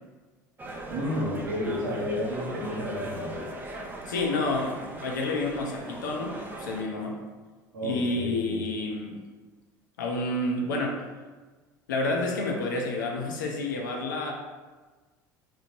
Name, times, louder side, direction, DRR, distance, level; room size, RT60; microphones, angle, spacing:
sound 1, 0.6-6.8, right 2 dB, 20° right, 0.5 m, -40 dB
voice 1, 0.9-3.5 7.7-8.6, left 1 dB, 75° right, -4 dB, 0.8 m, -31 dB
voice 2, 4.1-4.8 5.0-7.1 7.8-9.1 10.0-11.0 11.9-14.3, left 2 dB, 75° left, 1 dB, 0.5 m, -29 dB
3.0 x 2.0 x 2.8 m, 1.3 s
figure-of-eight pair, 65°, 10 cm